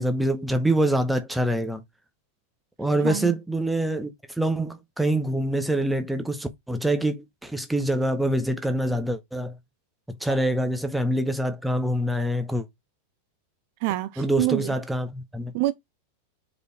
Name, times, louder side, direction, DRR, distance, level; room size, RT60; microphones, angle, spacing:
voice 1, 0.0-1.8 2.8-9.6 10.2-12.7 14.2-15.5, right 1 dB, 5° right, 0.9 m, -25 dB
voice 2, 3.0-3.3 13.8-14.7 15.5-15.7, right 17 dB, 45° right, 0.5 m, -26 dB
5.1 x 4.3 x 4.5 m
figure-of-eight pair, 90°, 0 cm